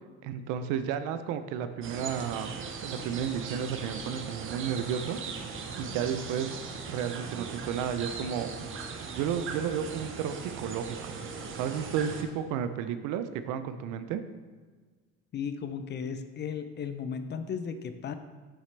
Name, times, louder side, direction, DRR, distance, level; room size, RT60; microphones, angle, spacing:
voice 1, 0.2-5.2 5.5-6.5 6.9-8.5 9.1-11.2 11.6-14.2, right 8 dB, 75° right, 11 dB, 0.6 m, -32 dB
sound 1, 1.8-12.2, right 5 dB, 40° right, 0.9 m, -39 dB
voice 2, 15.3-18.1, left 6 dB, 35° left, 10 dB, 0.5 m, -35 dB
11.0 x 4.1 x 3.3 m, 1.4 s
supercardioid pair, 105°, 31 cm